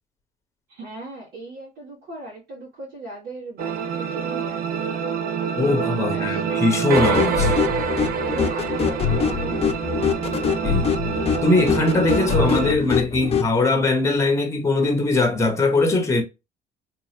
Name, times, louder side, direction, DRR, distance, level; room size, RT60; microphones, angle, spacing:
voice 1, 0.7-5.3 6.0-6.4 8.2-10.3, right 2 dB, 85° right, 2.1 m, -38 dB
sound 1, 3.6-12.8, right 7 dB, 60° right, 0.6 m, -26 dB
voice 2, 5.6-7.5 10.6-10.9 11.4-16.2, left 2 dB, 15° left, 0.9 m, -21 dB
sound 2, 6.9-13.5, left 6 dB, 35° left, 0.6 m, -24 dB
3.5 x 3.1 x 2.8 m
cardioid pair, 110°, 17 cm